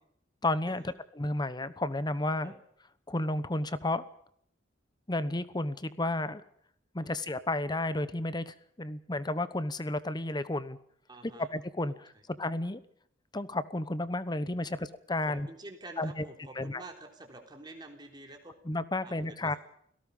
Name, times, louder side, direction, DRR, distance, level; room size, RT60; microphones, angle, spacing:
voice 1, 0.4-2.5 3.1-4.0 5.1-6.4 6.9-10.8 11.2-12.1 12.4-12.8 13.3-15.5 16.0-16.3 16.6-16.8 18.6-19.5, left 2 dB, 20° left, 14 dB, 1.0 m, -32 dB
voice 2, 11.1-11.5 12.1-12.2 15.2-18.5 19.0-19.6, right 2 dB, 20° right, 2 dB, 3.9 m, -48 dB
29.5 x 18.0 x 5.5 m, 0.68 s
head